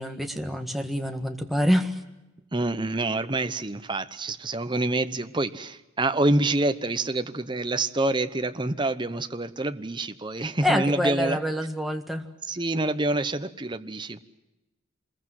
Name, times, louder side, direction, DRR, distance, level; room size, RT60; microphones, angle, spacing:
voice 1, 0.0-2.0 10.6-12.2, equal, ahead, 4 dB, 1.6 m, -26 dB
voice 2, 2.5-11.4 12.5-14.2, right 2 dB, 20° right, 9 dB, 0.9 m, -27 dB
27.0 x 21.5 x 7.7 m, 1.0 s
head